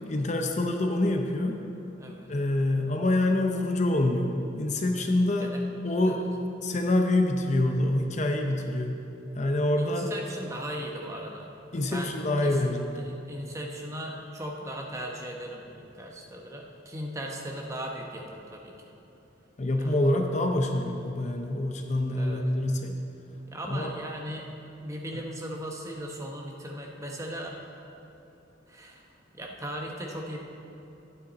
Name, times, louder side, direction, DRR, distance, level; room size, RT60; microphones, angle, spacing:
voice 1, 0.1-1.6 2.3-5.5 5.8-6.3 6.6-9.0 9.4-10.1 11.7-13.1 19.6-22.9 23.6-23.9 25.1-25.2, left 1 dB, 40° left, 3 dB, 0.7 m, -26 dB
voice 2, 2.0-2.3 5.4-5.6 6.1-6.2 9.8-11.5 11.8-12.2 12.4-18.9 19.8-19.9 22.1-22.4 23.5-24.5 24.8-27.6 28.7-29.1 29.3-30.4, equal, 15° right, 0 dB, 1.0 m, -38 dB
11.5 x 9.2 x 4.1 m, 2.9 s
head